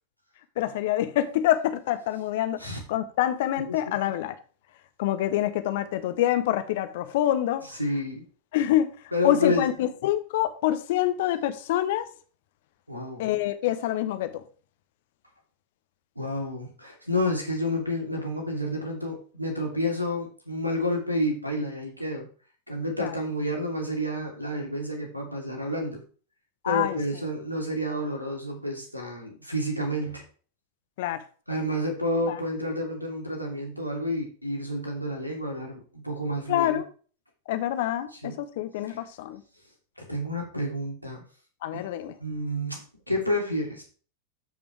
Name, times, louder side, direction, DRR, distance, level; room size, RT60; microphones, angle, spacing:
voice 1, 0.6-4.3 5.0-7.6 8.5-8.9 9.2-12.1 13.2-14.3 23.0-23.1 26.6-27.0 31.0-31.2 32.3-32.4 36.5-36.8 37.5-39.4 41.6-42.2, left 12 dB, 55° left, 1.0 m, -26 dB
voice 2, 7.7-8.2 9.1-9.7 12.9-13.4 16.2-22.3 22.7-26.0 26.7-30.2 31.5-36.8 38.2-38.4 38.9-39.0 40.0-41.2 41.7-41.8 42.2-43.8, left 1 dB, 90° right, 2.7 m, -30 dB
13.5 x 5.3 x 3.4 m
figure-of-eight pair, 90°, 0 cm